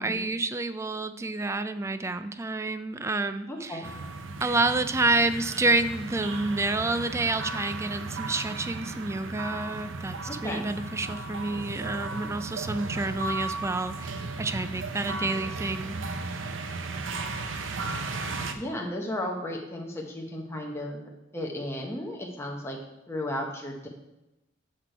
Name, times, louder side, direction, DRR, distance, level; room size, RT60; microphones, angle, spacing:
voice 1, 0.0-3.9 4.4-16.0, right 2 dB, 15° right, 11 dB, 0.3 m, -29 dB
voice 2, 3.5-3.9 10.3-10.6 18.5-21.0 21.3-22.8 23.1-23.9, left 1 dB, 15° left, -1 dB, 0.9 m, -34 dB
sound 1, 3.8-18.5, right 3 dB, 75° right, 0.6 m, -35 dB
6.4 x 6.0 x 4.5 m, 0.93 s
head